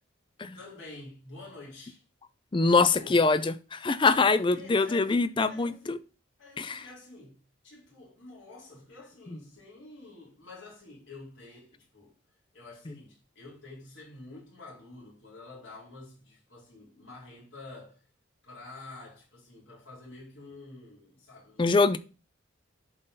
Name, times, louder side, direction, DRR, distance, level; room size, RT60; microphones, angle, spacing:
voice 1, 0.5-2.0 2.7-3.1 4.1-5.2 5.4-6.0 6.4-12.1 12.5-18.0 18.4-22.0, left 2 dB, 65° left, 4.2 m, -48 dB
voice 2, 2.5-6.0 6.6-6.8 21.6-22.0, left 3 dB, 25° left, 0.4 m, -24 dB
11.5 x 4.0 x 3.8 m
head